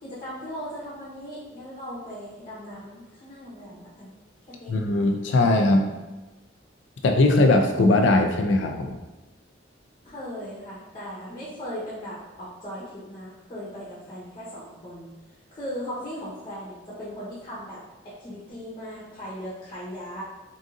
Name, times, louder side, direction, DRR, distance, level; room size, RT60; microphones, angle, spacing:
voice 1, 0.0-4.1 4.5-4.8 10.0-15.1 15.5-20.2, equal, 30° left, -9 dB, 1.2 m, -38 dB
voice 2, 4.7-5.9 7.0-9.0, left 2 dB, 70° left, 4 dB, 0.4 m, -20 dB
3.8 x 3.6 x 2.6 m, 1.1 s
head